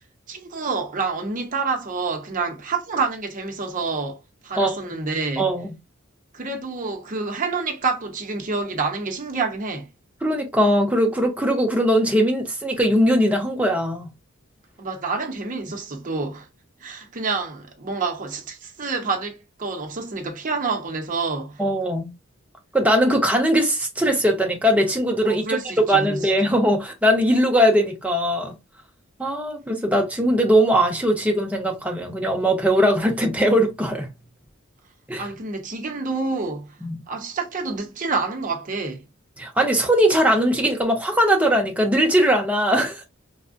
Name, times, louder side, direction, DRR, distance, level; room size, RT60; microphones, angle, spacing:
voice 1, 0.3-5.5 6.3-9.9 14.8-16.5 16.8-21.6 25.2-26.5 35.2-36.8 37.1-39.0, right 4 dB, 40° right, 0.7 m, -28 dB
voice 2, 5.4-5.7 10.2-14.1 21.6-22.1 22.7-28.6 29.2-34.1 35.1-35.3 36.8-37.0 39.4-43.0, equal, 5° right, 0.7 m, -20 dB
3.3 x 2.1 x 2.5 m
head